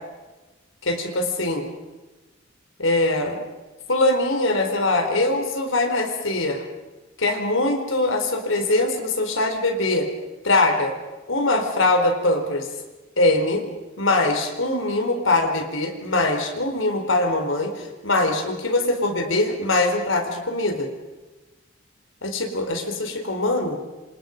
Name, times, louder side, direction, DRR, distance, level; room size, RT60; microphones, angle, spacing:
voice 1, 0.9-1.7 2.8-3.4 3.9-6.6 7.2-10.1 10.4-10.9 11.3-12.7 13.2-13.6 14.0-20.9 22.2-23.8, left 2 dB, 80° left, 5 dB, 4.2 m, -22 dB
27.5 x 27.0 x 5.3 m, 1.2 s
head